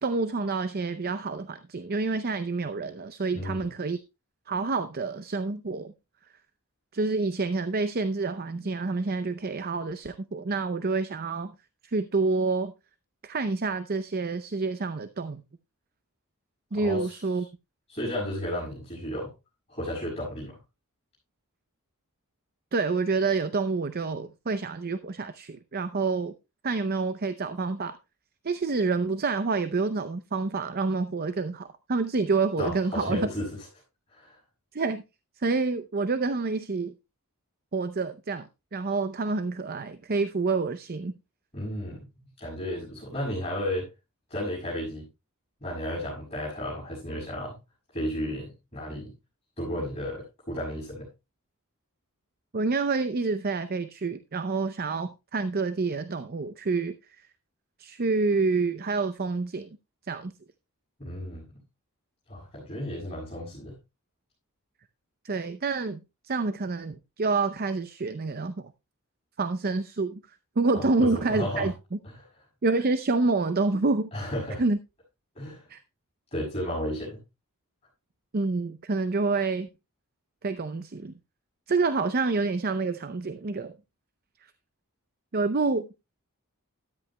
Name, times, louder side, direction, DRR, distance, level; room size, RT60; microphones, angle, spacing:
voice 1, 0.0-4.0 4.5-5.9 6.9-11.5 11.8-12.7 13.2-15.4 16.7-17.5 22.7-26.3 26.6-28.0 28.4-33.3 34.7-35.0 35.4-36.9 37.7-41.1 52.5-56.9 57.8-59.7 60.1-60.3 65.2-66.0 66.2-68.7 69.4-70.2 70.6-71.7 72.6-74.1 74.6-74.8 75.7-75.8 78.3-79.7 80.4-81.1 81.7-83.7 85.3-85.9, right 3 dB, 45° right, 0.6 m, -28 dB
voice 2, 3.3-3.7 16.7-17.2 17.9-19.3 19.7-20.6 32.6-33.5 34.1-34.4 41.5-42.0 42.4-43.9 44.3-45.1 45.6-47.6 47.9-49.1 49.6-51.1 61.0-61.5 62.3-63.7 70.7-71.7 72.0-72.2 74.1-74.6 75.3-75.6 76.3-77.2, equal, 25° left, 6.2 m, -33 dB
13.0 x 13.0 x 2.2 m
head